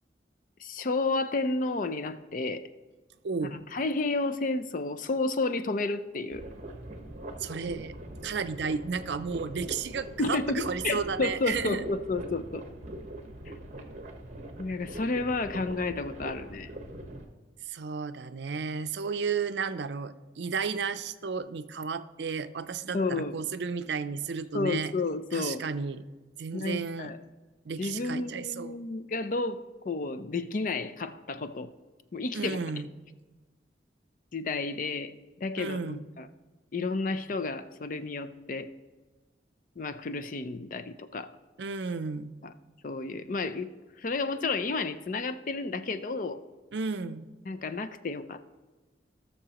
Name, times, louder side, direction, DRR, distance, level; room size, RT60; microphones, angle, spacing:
voice 1, 0.6-2.6 3.5-6.4 10.2-12.6 13.5-13.6 14.6-16.7 22.9-23.3 24.5-25.6 26.5-27.2 27.8-31.7 32.1-32.6 34.3-35.1 35.4-36.3 36.7-38.7 39.8-41.3 42.4-42.5 42.8-43.7 44.0-46.4 47.5-48.4, left 3 dB, 50° left, 11 dB, 0.5 m, -31 dB
voice 2, 3.2-3.7 7.4-7.9 8.2-11.8 17.7-24.9 25.3-26.0 26.4-27.1 27.7-28.8 32.3-32.9 35.6-36.0 41.6-42.3 46.7-47.3, right 5 dB, 75° right, 12 dB, 0.5 m, -33 dB
sound 1, 6.3-17.3, right 1 dB, 40° right, 1.1 m, -42 dB
18.5 x 6.6 x 3.0 m, 1.3 s
head